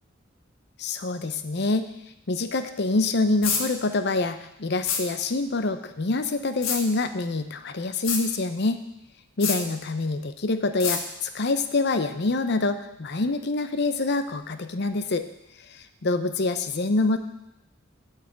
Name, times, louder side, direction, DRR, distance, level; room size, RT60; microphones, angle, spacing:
voice 1, 0.8-1.9 2.3-8.8 9.4-15.3 16.0-17.2, left 3 dB, 55° left, 9 dB, 0.7 m, -26 dB
sound 1, 3.4-3.6 4.8-5.0 6.6-6.8 8.0-8.2 9.4-9.6 10.8-11.0, left 6 dB, 75° left, 1.4 m, -26 dB
9.0 x 5.6 x 8.1 m, 0.87 s
head